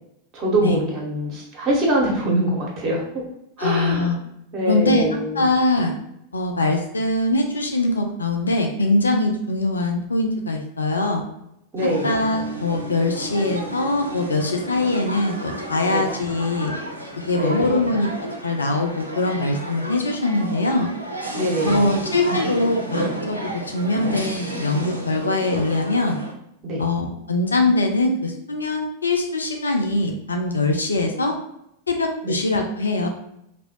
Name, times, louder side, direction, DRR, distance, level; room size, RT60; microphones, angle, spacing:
voice 1, 0.3-3.2 3.6-4.2 4.5-5.4 11.7-12.2 15.9-16.0 17.3-17.9 21.3-22.1 26.6-26.8 32.2-32.3, right 1 dB, 30° right, -2 dB, 1.2 m, -24 dB
voice 2, 3.6-4.2 4.7-5.1 5.3-5.9 6.3-11.2 12.0-16.7 17.3-20.9 21.6-26.2 26.8-31.3 31.9-33.1, left 2 dB, 75° left, 3 dB, 0.4 m, -22 dB
sound 1, 11.8-26.3, right 1 dB, 85° right, 0.5 m, -32 dB
2.9 x 2.5 x 3.0 m, 0.80 s
figure-of-eight pair, 90°, 0 cm